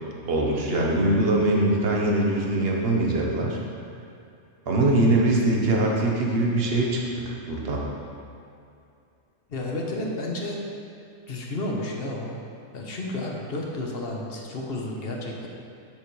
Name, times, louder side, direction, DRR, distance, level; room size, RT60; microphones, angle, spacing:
voice 1, 0.2-3.6 4.7-7.9, right 2 dB, 50° right, -2 dB, 1.3 m, -22 dB
voice 2, 9.5-10.6 11.3-12.4 12.7-15.5, left 2 dB, 45° left, -1 dB, 1.2 m, -31 dB
9.5 x 6.9 x 3.3 m, 2.6 s
omnidirectional pair, 1.4 m